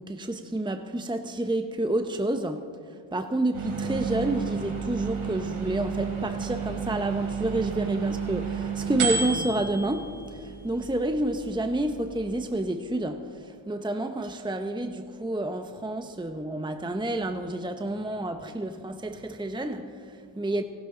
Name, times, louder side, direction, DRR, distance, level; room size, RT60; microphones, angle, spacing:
voice 1, 0.0-2.7 3.1-20.6, right 1 dB, 10° right, 0.9 m, -29 dB
sound 1, 3.5-12.4, right 6 dB, 90° right, 3.4 m, -32 dB
27.5 x 12.5 x 3.9 m
cardioid pair, 55°, 50 cm